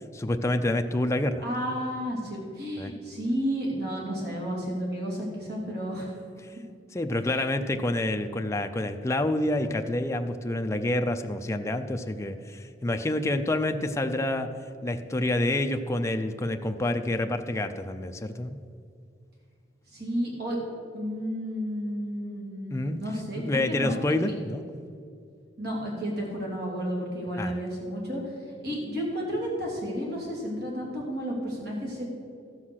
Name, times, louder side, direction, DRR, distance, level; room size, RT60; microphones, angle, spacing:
voice 1, 0.1-1.4 2.8-2.9 6.9-14.5 14.8-18.6 22.7-23.0 23.4-24.6 27.4-27.6, left 1 dB, 15° left, 6 dB, 0.4 m, -28 dB
voice 2, 1.4-6.1 7.2-7.4 19.9-20.6 20.9-24.0 25.6-28.3 28.6-32.1, equal, 60° right, -3 dB, 3.0 m, -32 dB
14.5 x 5.8 x 6.3 m, 2.3 s
head